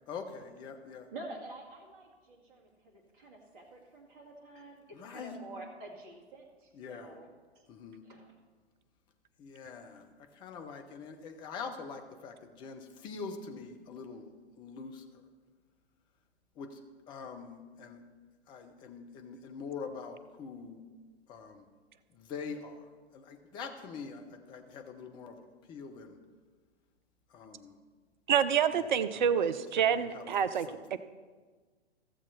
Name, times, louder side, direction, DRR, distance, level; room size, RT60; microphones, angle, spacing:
voice 1, 0.1-1.1 4.9-5.4 6.7-7.1 7.7-8.0 9.4-10.1 10.4-14.3 14.6-15.0 16.6-16.8 17.1-18.0 18.5-20.8 21.3-21.6 22.1-22.8 23.1-26.2 27.3-27.7 28.7-29.5 29.8-30.3 30.7-31.0, left 5 dB, 15° left, 5 dB, 0.7 m, -44 dB
voice 2, 1.1-7.3 7.5-7.6 8.0-8.3, right 2 dB, 30° right, -1 dB, 2.0 m, -48 dB
voice 3, 28.3-31.0, right 8 dB, 45° right, 13 dB, 0.5 m, -28 dB
15.0 x 7.3 x 4.1 m, 1.4 s
figure-of-eight pair, 115°, 34 cm